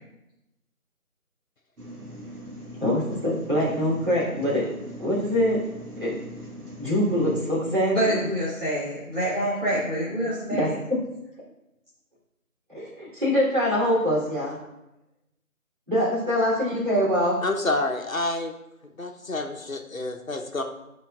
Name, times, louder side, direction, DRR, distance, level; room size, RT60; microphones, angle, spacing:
sound 1, 1.8-7.5, equal, 85° right, 1.8 m, -41 dB
voice 1, 2.7-4.7 5.0-5.6 6.0-6.2 6.8-8.3 10.5-11.0 12.7-14.6 15.9-17.4, equal, 35° right, -8 dB, 3.2 m, -24 dB
voice 2, 7.2-10.7, right 1 dB, 55° right, -9 dB, 3.1 m, -27 dB
voice 3, 17.4-18.5 19.0-20.6, left 2 dB, 65° left, 5 dB, 1.0 m, -28 dB
14.5 x 5.8 x 2.4 m, 0.92 s
figure-of-eight pair, 175°, 44 cm